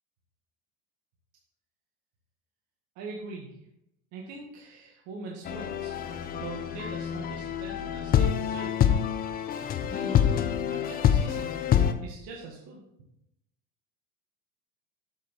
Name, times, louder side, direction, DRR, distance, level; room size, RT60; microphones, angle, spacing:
voice 1, 2.9-3.6 4.1-6.0 6.3-8.8 9.2-11.5 12.0-12.8, right 3 dB, 60° right, -1 dB, 1.7 m, -43 dB
sound 1, 5.5-11.9, left 9 dB, 25° left, 0.6 m, -26 dB
7.8 x 7.4 x 4.2 m, 0.82 s
cardioid pair, 145°, 33 cm